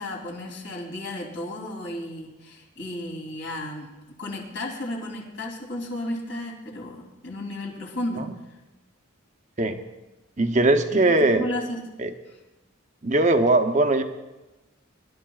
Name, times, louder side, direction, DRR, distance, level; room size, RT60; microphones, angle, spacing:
voice 1, 0.0-3.9 4.2-8.2 11.3-11.8, left 1 dB, 60° left, -2 dB, 3.1 m, -33 dB
voice 2, 10.4-11.5 12.0-12.1 13.0-14.0, right 2 dB, 35° right, 7 dB, 0.8 m, -20 dB
24.5 x 11.5 x 2.4 m, 1.1 s
head